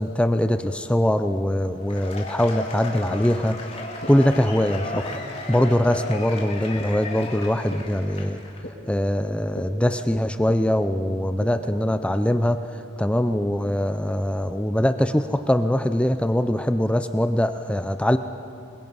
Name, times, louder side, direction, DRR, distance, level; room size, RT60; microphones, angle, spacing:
voice 1, 0.0-3.6 4.1-5.0 5.5-8.4 8.9-12.7 13.0-18.2, left 1 dB, 5° left, 9 dB, 0.5 m, -22 dB
Cheering / Applause / Crowd, 1.8-8.6, left 2 dB, 35° left, 2.7 m, -35 dB
sound 1, 3.1-3.2 4.0-4.1 4.9-5.0 5.9-6.0 6.8-6.9 7.7-7.8 8.6-8.7 9.5-9.6 10.5-10.6 11.4-11.5, left 1 dB, 65° left, 5.2 m, -35 dB
26.5 x 22.0 x 5.5 m, 2.7 s
head